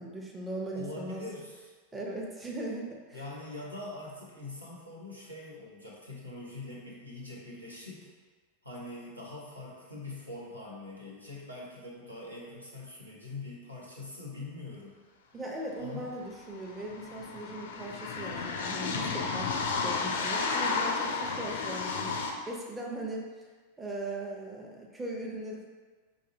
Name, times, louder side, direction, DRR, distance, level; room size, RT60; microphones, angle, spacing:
voice 1, 0.0-1.2 1.9-3.2 15.3-23.5 23.8-25.7, right 1 dB, 10° right, -2 dB, 0.5 m, -39 dB
voice 2, 0.7-1.7 3.1-8.1 8.6-14.9 15.8-16.1, left 2 dB, 85° right, -5 dB, 0.8 m, -43 dB
sound 1, 15.8-15.9 16.1-22.3, left 4 dB, 60° left, 0.4 m, -32 dB
4.9 x 2.6 x 2.6 m, 1.4 s
figure-of-eight pair, 90°, 0 cm